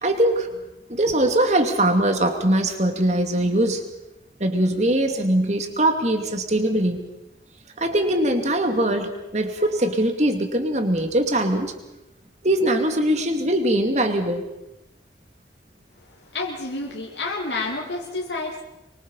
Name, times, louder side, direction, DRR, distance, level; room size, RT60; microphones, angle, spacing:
voice 1, 0.0-0.5 0.9-3.8 4.4-7.0 7.8-11.7 12.4-14.5, right 1 dB, 40° right, 6 dB, 2.6 m, -21 dB
voice 2, 16.3-18.6, left 3 dB, 85° left, -1 dB, 2.8 m, -29 dB
25.0 x 23.5 x 5.6 m, 0.94 s
head